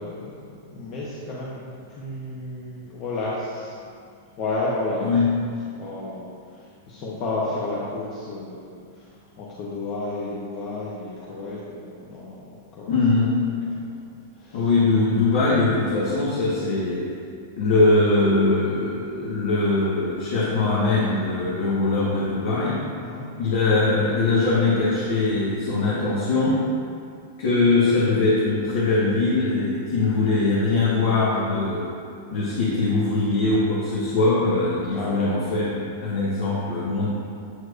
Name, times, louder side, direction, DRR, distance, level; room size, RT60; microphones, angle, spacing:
voice 1, 0.0-3.8 4.4-5.1 5.8-9.1 9.4-13.0 13.7-14.0 14.4-14.6 23.0-23.3 32.3-32.4 34.9-35.2, left 2 dB, 45° left, -6 dB, 1.0 m, -32 dB
voice 2, 12.9-13.3 14.5-17.0 17.6-22.8 23.4-26.6 27.4-31.8 32.3-37.1, left 3 dB, 60° left, -7 dB, 1.2 m, -21 dB
8.2 x 4.6 x 2.6 m, 2.3 s
hypercardioid pair, 105°, 0 cm